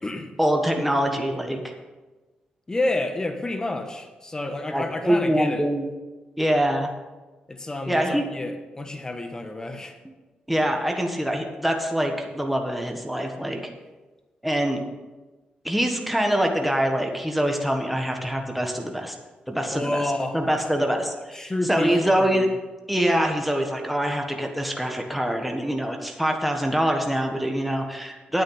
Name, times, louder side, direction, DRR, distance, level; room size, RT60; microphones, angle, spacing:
voice 1, 0.4-1.7 4.7-5.9 6.4-6.9 7.9-8.3 10.5-13.6 14.4-14.8 15.6-19.1 19.5-22.5 22.9-28.4, equal, ahead, 2 dB, 1.4 m, -24 dB
voice 2, 2.7-5.6 7.5-9.9 19.7-20.6 21.3-22.5, left 2 dB, 20° left, 6 dB, 1.3 m, -29 dB
9.1 x 8.9 x 5.7 m, 1.2 s
cardioid pair, 95°, 3 cm